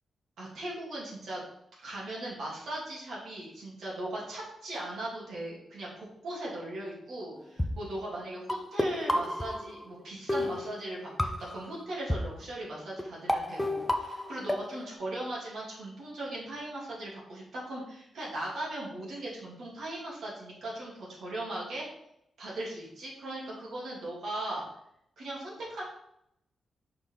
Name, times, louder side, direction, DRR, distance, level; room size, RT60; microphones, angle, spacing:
voice 1, 0.4-1.4 1.8-21.9 22.4-24.6 25.2-25.9, right 1 dB, 65° right, -5 dB, 2.6 m, -38 dB
sound 1, 7.6-7.7 8.5-10.0 10.3-11.7 12.1-12.2 13.0-13.1 13.3-14.9, left 1 dB, 10° left, 0.5 m, -30 dB
5.8 x 5.0 x 3.8 m, 0.76 s
wide cardioid pair, 175°, 0 cm